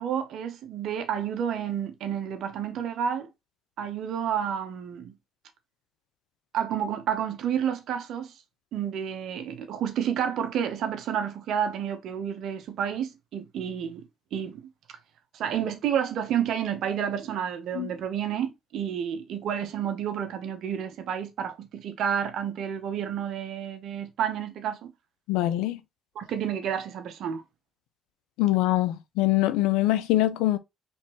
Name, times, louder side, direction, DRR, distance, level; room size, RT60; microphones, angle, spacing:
voice 1, 0.0-3.3 3.8-5.2 6.5-8.3 8.7-14.0 14.3-14.6 15.3-24.9 26.2-27.4, right 8 dB, 75° right, 0.9 m, -30 dB
voice 2, 25.3-25.8 28.4-30.6, left 16 dB, 90° left, 0.5 m, -24 dB
4.4 x 3.6 x 3.0 m
supercardioid pair, 60°, 0 cm